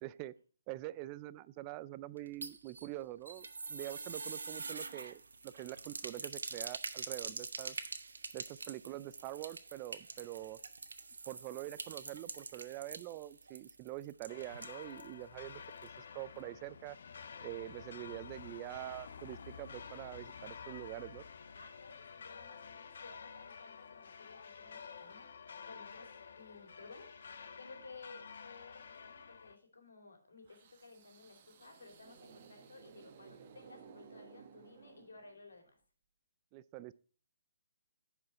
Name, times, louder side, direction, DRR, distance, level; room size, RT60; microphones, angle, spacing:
voice 1, 0.0-0.3 0.7-7.8 8.3-10.6 11.3-17.0 17.4-21.2 36.5-36.9, right 16 dB, 30° right, 17 dB, 0.3 m, -45 dB
sound 1, 2.2-15.1 15.4-15.5 15.8-15.9, right 4 dB, 85° right, 1.0 m, -45 dB
sound 2, 14.3-29.6, left 6 dB, 65° left, 0.7 m, -51 dB
voice 2, 21.5-35.8, left 3 dB, 85° left, 3 dB, 2.6 m, -56 dB
sound 3, 30.5-35.5, right 7 dB, 45° right, 0.9 m, -58 dB
10.5 x 5.0 x 4.2 m, 0.40 s
hypercardioid pair, 150°, 0 cm